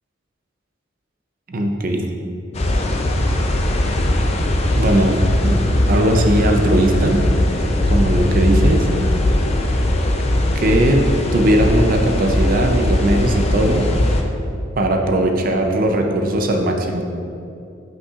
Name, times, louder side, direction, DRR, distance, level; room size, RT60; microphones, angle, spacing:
voice 1, 1.5-2.0 4.7-5.1 5.4-5.6 5.9-7.2 7.9-8.9 10.6-13.9 14.8-17.1, right 1 dB, 45° right, 3 dB, 0.5 m, -18 dB
sound 1, 2.5-14.2, left 1 dB, 30° left, 0.4 m, -19 dB
8.2 x 5.3 x 2.4 m, 2.7 s
head